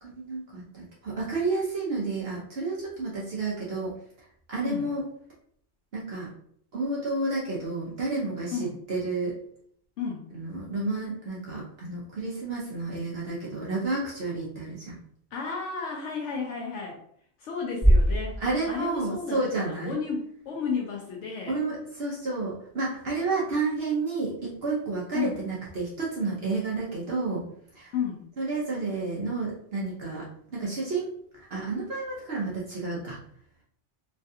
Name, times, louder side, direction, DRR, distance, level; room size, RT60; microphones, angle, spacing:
voice 1, 0.0-3.9 4.5-5.0 5.9-6.3 6.7-8.6 8.9-9.4 10.3-15.0 18.4-20.0 21.5-27.4 27.8-27.9 28.4-30.2 30.5-31.1 31.5-33.2, right 3 dB, 60° right, -5 dB, 1.0 m, -30 dB
voice 2, 10.0-10.3 15.3-17.0 17.4-18.4 18.7-21.6 25.1-25.4 27.9-28.2, left 5 dB, 75° left, 0 dB, 0.9 m, -32 dB
sound 1, 17.8-19.9, equal, 5° right, 0.6 m, -24 dB
3.2 x 2.3 x 2.6 m, 0.65 s
omnidirectional pair, 1.2 m